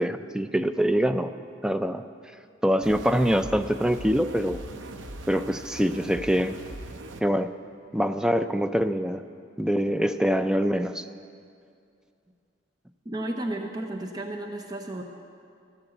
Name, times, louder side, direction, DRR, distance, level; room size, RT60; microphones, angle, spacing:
voice 1, 0.0-1.3 1.6-2.0 2.6-4.6 5.3-6.6 7.2-7.5 7.9-9.2 9.6-11.1, equal, 5° right, 9 dB, 0.4 m, -24 dB
sound 1, 2.8-7.2, right 1 dB, 80° right, 0.9 m, -40 dB
voice 2, 13.0-15.0, right 1 dB, 20° right, 2 dB, 0.8 m, -33 dB
14.0 x 9.9 x 7.9 m, 2.4 s
head